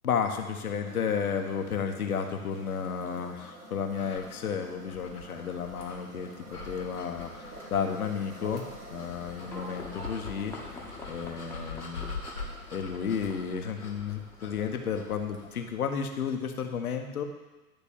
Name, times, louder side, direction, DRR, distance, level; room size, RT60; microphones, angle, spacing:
voice 1, 0.0-8.6 8.9-10.8 11.1-12.1 12.7-17.2, left 7 dB, 70° left, 5 dB, 1.3 m, -32 dB
sound 1, 0.8-15.7, right 2 dB, 90° right, 2.0 m, -49 dB
sound 2, 3.9-15.8, left 4 dB, 85° left, 2.1 m, -44 dB
Livestock farm animals working animals, 9.4-15.5, left 2 dB, 5° left, 1.3 m, -47 dB
10.5 x 4.1 x 7.2 m, 1.1 s
figure-of-eight pair, 115°, 45 cm